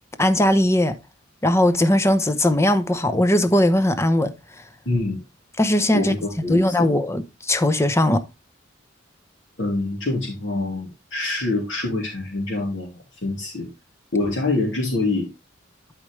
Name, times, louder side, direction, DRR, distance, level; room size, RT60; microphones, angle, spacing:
voice 1, 0.2-0.9 1.4-4.3 5.6-6.1 6.5-8.2, left 1 dB, 15° left, 0.8 m, -19 dB
voice 2, 4.9-5.2 5.9-6.9 9.6-13.7 14.1-15.3, left 2 dB, 75° left, 2.7 m, -25 dB
12.0 x 4.9 x 3.2 m
head